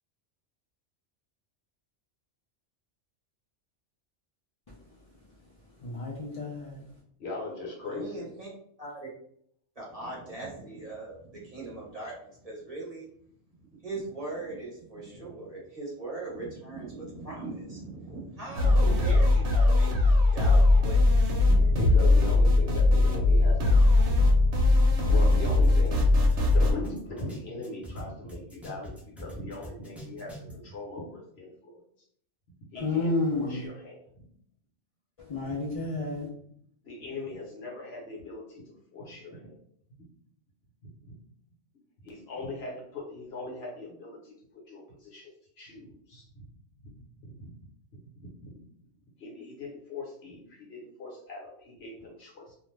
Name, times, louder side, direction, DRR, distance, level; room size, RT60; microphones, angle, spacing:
voice 1, 5.8-6.8 32.8-33.7 35.2-36.3, left 2 dB, 50° left, 0.4 m, -31 dB
voice 2, 7.2-8.3 21.7-23.6 25.1-31.8 32.7-34.0 36.8-39.6 42.0-44.3 44.7-45.3 45.6-46.2 46.8-46.9 47.4-47.5 47.9-48.6 49.2-52.5, left 2 dB, 65° left, 1.1 m, -40 dB
voice 3, 7.8-8.5 8.8-9.1 9.7-13.1 13.7-21.9, right 2 dB, 35° right, 0.9 m, -40 dB
sound 1, 18.5-26.7, left 2 dB, 80° right, 1.0 m, -20 dB
sound 2, 25.3-25.4 25.6-28.0 28.3-30.5, equal, ahead, 0.6 m, -44 dB
2.5 x 2.2 x 3.1 m
omnidirectional pair, 1.2 m